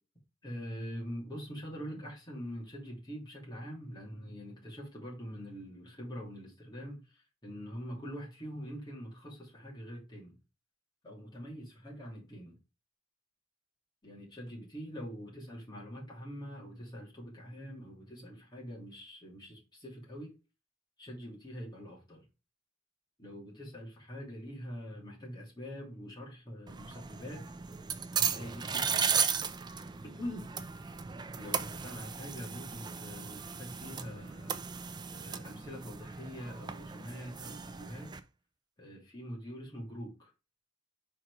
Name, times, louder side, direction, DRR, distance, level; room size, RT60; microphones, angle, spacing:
voice 1, 0.4-10.4 11.0-12.6 14.0-20.3 21.0-22.3 23.2-27.4 28.1-29.2 30.0-30.5 31.4-38.2 38.8-40.3, equal, 20° left, 2.9 m, -44 dB
sound 1, 26.7-38.2, right 6 dB, 20° right, 0.4 m, -36 dB
4.8 x 4.5 x 4.9 m
head